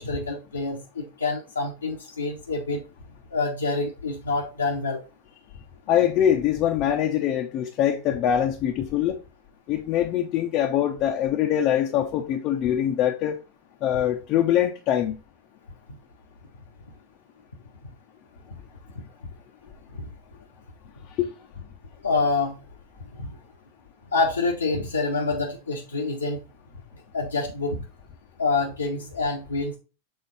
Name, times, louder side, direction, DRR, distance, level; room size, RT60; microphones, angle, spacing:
voice 1, 0.0-2.8 3.3-5.0 22.0-22.5 23.2-23.3 24.1-26.4 27.1-27.8 28.4-29.8, left 3 dB, 85° left, 1.0 m, -26 dB
voice 2, 5.9-9.2 9.7-13.4 13.8-15.2 21.2-21.3, left 10 dB, 40° left, 0.8 m, -23 dB
6.8 x 3.6 x 4.0 m
figure-of-eight pair, 90°, 0 cm